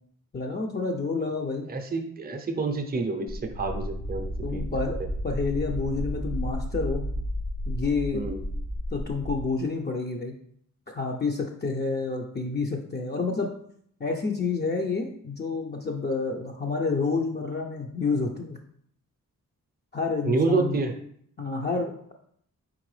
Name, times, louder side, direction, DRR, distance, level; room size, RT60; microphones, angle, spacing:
voice 1, 0.3-1.7 4.4-5.0 5.2-7.0 7.7-8.2 8.9-10.3 10.9-13.5 14.0-18.6 19.9-20.8 21.4-22.1, left 4 dB, 30° left, 0 dB, 0.5 m, -29 dB
voice 2, 1.7-4.7 8.1-8.4 20.2-21.0, right 3 dB, 30° right, 5 dB, 0.6 m, -28 dB
sound 1, 3.3-9.4, equal, 70° left, 1.2 m, -32 dB
4.5 x 3.7 x 3.2 m, 0.66 s
cardioid pair, 80°, 33 cm